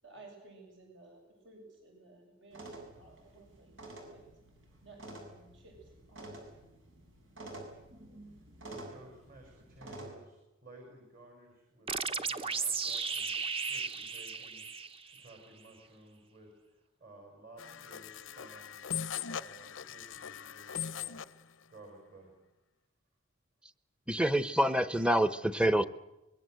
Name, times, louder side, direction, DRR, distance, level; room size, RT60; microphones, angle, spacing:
voice 1, 0.0-4.4 4.8-6.4, right 3 dB, 70° right, 1 dB, 7.5 m, -56 dB
sound 1, 2.5-10.1, right 2 dB, 90° right, 7.6 m, -49 dB
voice 2, 8.7-18.9 19.4-22.3, right 1 dB, 45° right, 1 dB, 5.9 m, -56 dB
sound 2, 11.9-15.4, right 5 dB, 30° right, 1.1 m, -35 dB
sound 3, 17.6-21.4, left 8 dB, 90° left, 0.8 m, -40 dB
voice 3, 24.1-25.8, right 1 dB, 5° right, 14 dB, 0.8 m, -27 dB
24.5 x 22.0 x 7.9 m, 0.97 s
head